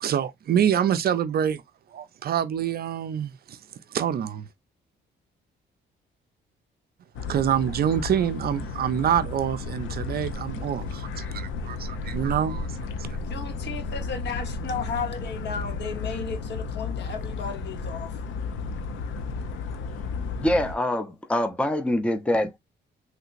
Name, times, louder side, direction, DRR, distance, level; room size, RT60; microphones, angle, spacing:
voice 1, 0.0-1.6 1.9-3.6 3.9-4.5 7.3-12.7, right 9 dB, 50° right, 0.4 m, -26 dB
sound 1, 7.2-20.8, left 4 dB, 75° left, 0.6 m, -33 dB
voice 2, 13.2-18.2, left 5 dB, 60° left, 0.9 m, -34 dB
voice 3, 20.4-22.6, left 1 dB, 5° left, 0.5 m, -24 dB
3.2 x 2.8 x 2.4 m
cardioid pair, 90°, 20 cm